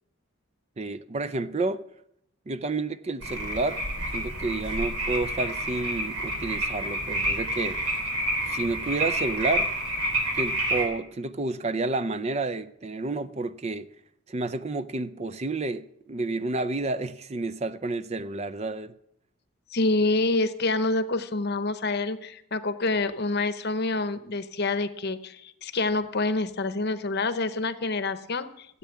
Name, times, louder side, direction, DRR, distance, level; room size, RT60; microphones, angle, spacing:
voice 1, 0.8-1.8 2.5-3.8 4.1-7.8 8.5-9.7 10.3-13.9 14.3-18.9, right 3 dB, 30° right, 0.4 m, -30 dB
sound 1, 3.2-10.8, right 1 dB, 85° right, 3.6 m, -29 dB
voice 2, 19.7-28.8, left 2 dB, 50° left, 0.8 m, -27 dB
14.0 x 8.3 x 8.1 m
head